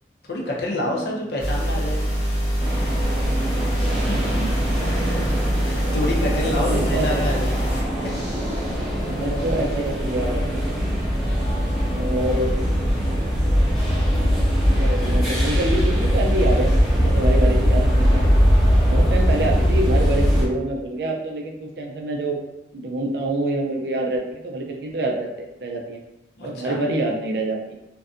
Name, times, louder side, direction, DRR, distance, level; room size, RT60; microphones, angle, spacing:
voice 1, 0.3-2.0 3.8-4.1 5.6-7.6 8.0-8.1 26.4-26.8, left 1 dB, 65° left, -2 dB, 0.5 m, -27 dB
voice 2, 0.8-1.2 4.8-5.0 6.3-7.4 9.0-10.8 11.9-12.5 14.8-18.2 18.8-22.4 22.7-26.0 26.4-27.7, right 1 dB, 60° right, 1 dB, 0.4 m, -26 dB
sound 1, 1.4-7.8, equal, 85° left, 1.2 m, -24 dB
sound 2, 2.6-20.4, equal, ahead, 0.7 m, -21 dB
2.6 x 2.1 x 2.4 m, 0.94 s
head